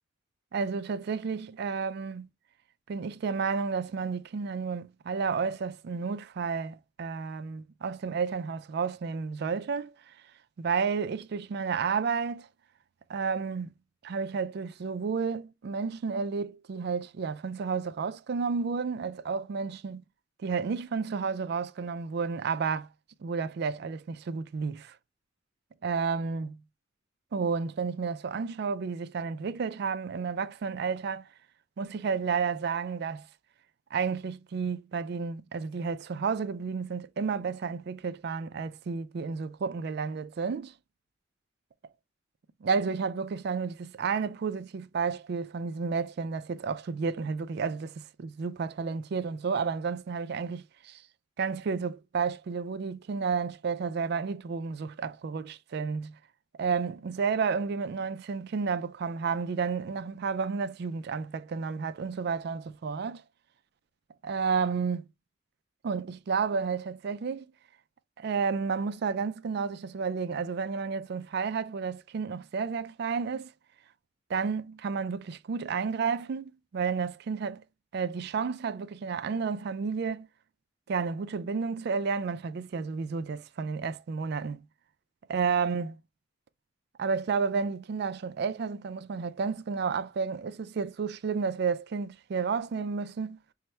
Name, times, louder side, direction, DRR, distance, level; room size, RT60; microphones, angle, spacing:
voice 1, 0.5-2.3 2.9-9.9 10.6-12.5 13.1-13.7 14.0-20.0 20.4-22.9 23.2-25.0 25.8-26.6 27.3-31.3 31.8-33.3 33.9-40.7 42.6-51.0 51.4-56.1 56.6-63.2 64.2-65.1 65.8-67.5 68.2-73.5 74.3-77.6 77.9-80.3 80.9-84.6 85.3-85.9 87.0-93.4, right 5 dB, 55° right, 0.4 m, -31 dB
5.5 x 2.1 x 3.2 m
head